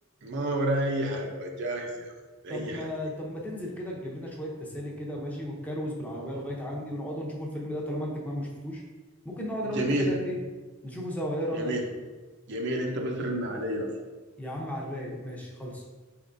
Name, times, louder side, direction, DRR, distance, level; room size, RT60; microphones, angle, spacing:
voice 1, 0.2-2.1 2.4-2.9 9.6-10.1 11.5-11.8 12.5-13.9, right 1 dB, 60° right, 2 dB, 0.6 m, -30 dB
voice 2, 2.5-8.8 9.2-10.4 10.8-11.7 14.4-15.8, equal, 5° left, -3 dB, 0.6 m, -34 dB
4.7 x 3.5 x 2.5 m, 1.3 s
head